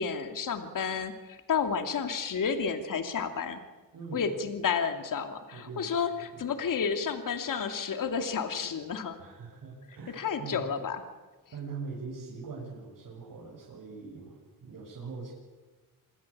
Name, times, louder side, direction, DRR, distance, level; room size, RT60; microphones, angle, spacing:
voice 1, 0.0-3.6 4.1-9.2 10.2-11.0, left 6 dB, 60° left, 7 dB, 2.7 m, -31 dB
voice 2, 3.9-4.2 5.5-6.0 6.3-6.6 9.2-10.7 11.5-15.3, right 4 dB, 65° right, -4 dB, 7.3 m, -42 dB
27.5 x 21.0 x 8.7 m, 1.3 s
cardioid pair, 100°, 36 cm